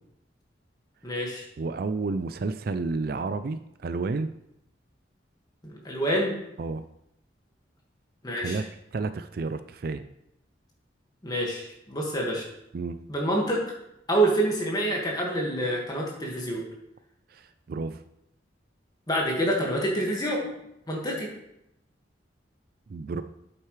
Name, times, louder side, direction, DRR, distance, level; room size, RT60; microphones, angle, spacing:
voice 1, 1.0-1.4 5.6-6.4 8.2-8.6 11.2-12.4 13.1-13.6 14.1-16.6 19.1-20.5 20.9-21.3, right 1 dB, 20° left, -2 dB, 1.9 m, -27 dB
voice 2, 1.6-4.3 6.6-6.8 8.3-8.6 8.9-10.0 12.7-13.0 17.3-18.0 22.9-23.2, right 3 dB, 50° right, 11 dB, 0.4 m, -31 dB
8.8 x 8.0 x 3.3 m, 0.82 s
head